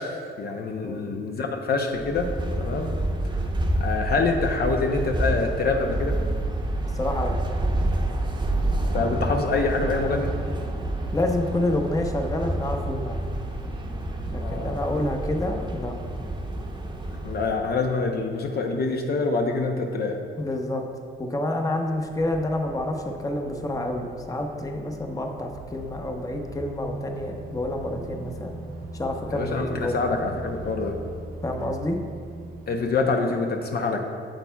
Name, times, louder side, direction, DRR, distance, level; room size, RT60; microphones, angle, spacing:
voice 1, 0.0-2.3 2.6-2.9 3.8-6.2 8.9-10.4 14.4-14.8 17.1-20.2 29.3-31.0 32.7-34.0, left 3 dB, 55° left, 3 dB, 0.6 m, -26 dB
sound 1, 1.9-17.7, right 1 dB, 20° right, 0.8 m, -28 dB
voice 2, 6.9-7.3 9.0-9.1 11.1-13.2 14.3-15.9 20.4-20.8 21.2-28.5 28.9-30.0 31.4-32.0, left 1 dB, 15° left, 3 dB, 0.7 m, -28 dB
sound 2, 18.7-33.1, right 1 dB, 90° right, 1.1 m, -42 dB
8.8 x 7.0 x 2.3 m, 2.2 s
cardioid pair, 90°, 20 cm